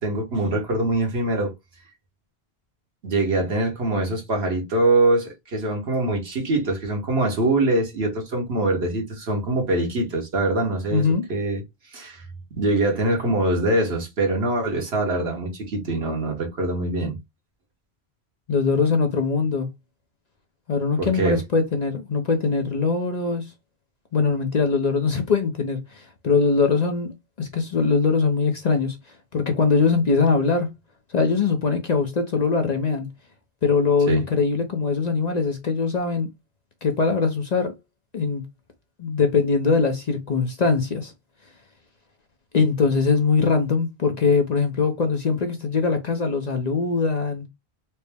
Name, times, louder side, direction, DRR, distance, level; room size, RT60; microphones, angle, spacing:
voice 1, 0.0-1.5 3.0-11.6 11.9-12.2 12.5-17.2 21.0-21.4 34.1-34.3, right 2 dB, 70° right, 1.5 m, -23 dB
voice 2, 10.9-11.2 18.5-19.7 20.7-23.5 24.1-27.1 27.4-29.0 29.3-30.7 31.1-33.1 33.6-36.3 36.8-37.7 38.1-38.4 39.0-41.1 42.5-47.4, left 4 dB, 45° left, 0.6 m, -22 dB
4.3 x 2.0 x 3.4 m
omnidirectional pair, 1.1 m